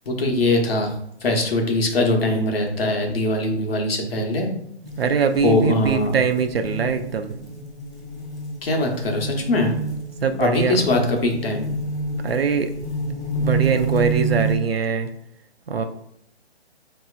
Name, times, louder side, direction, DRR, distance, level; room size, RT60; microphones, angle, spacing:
voice 1, 0.1-0.9 1.2-4.5 5.4-6.1 8.6-9.7 10.4-11.7, left 2 dB, 60° left, 2 dB, 1.0 m, -21 dB
sound 1, 4.8-14.6, right 3 dB, 5° left, 0.7 m, -29 dB
voice 2, 5.0-7.3 10.2-10.9 12.2-12.7 13.4-15.1 15.7-15.8, right 6 dB, 60° right, 8 dB, 0.5 m, -22 dB
4.5 x 2.8 x 2.4 m, 0.73 s
hypercardioid pair, 170°, 34 cm